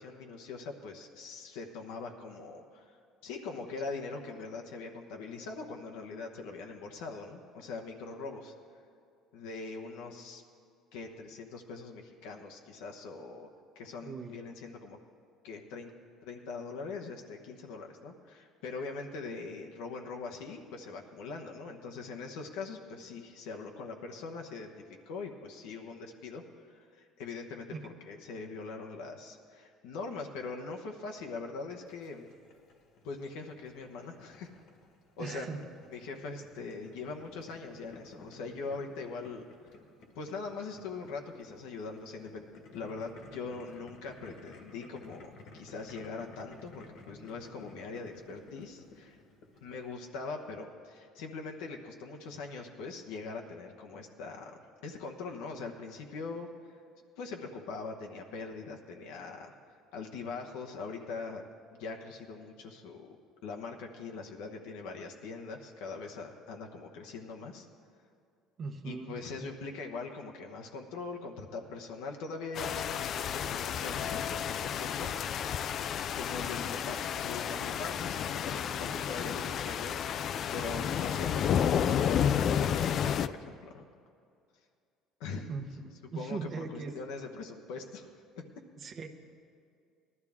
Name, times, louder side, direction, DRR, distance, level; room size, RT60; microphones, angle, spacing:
voice 1, 0.0-3.0 3.2-8.5 9.3-10.4 10.9-13.5 13.7-15.0 15.4-15.9 16.2-24.7 25.1-27.7 28.0-32.3 33.0-34.5 35.2-35.6 35.9-39.7 40.1-49.2 49.6-56.8 57.2-59.5 59.9-63.2 63.4-67.7 68.8-75.2 76.1-83.9 85.2-85.5 86.1-88.4, left 4 dB, 85° left, 2 dB, 1.0 m, -42 dB
voice 2, 14.0-14.3 27.7-27.8 35.2-35.6 55.5-55.6 68.6-69.5 79.3-79.5 85.5-86.9 88.8-89.1, right 4 dB, 45° right, 5 dB, 1.0 m, -40 dB
Boiling, 31.9-49.9, left 3 dB, 70° left, 1.6 m, -55 dB
sound 1, 72.5-83.3, left 8 dB, 50° left, 0.4 m, -31 dB
18.0 x 12.5 x 3.6 m, 2.4 s
cardioid pair, 105°, 0 cm